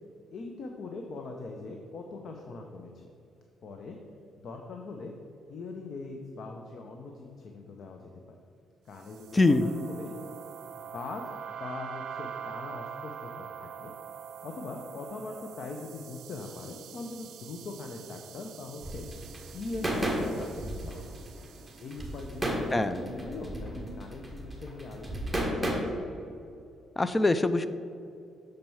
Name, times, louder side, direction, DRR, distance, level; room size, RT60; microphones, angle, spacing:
voice 1, 0.3-3.1 3.6-4.0 4.4-5.1 5.5-8.4 8.8-10.1 10.8-11.2 11.6-13.9 14.4-19.1 19.5-21.2 21.8-25.9, left 3 dB, 60° left, 3 dB, 0.7 m, -41 dB
sound 1, 9.0-22.4, right 8 dB, 75° right, 0.3 m, -45 dB
voice 2, 9.3-9.7 22.7-23.1 27.0-27.7, left 2 dB, 20° left, 12 dB, 0.4 m, -23 dB
sound 2, 18.8-25.7, right 1 dB, 5° right, 1.5 m, -33 dB
6.6 x 4.5 x 5.5 m, 2.6 s
cardioid pair, 90°, 0 cm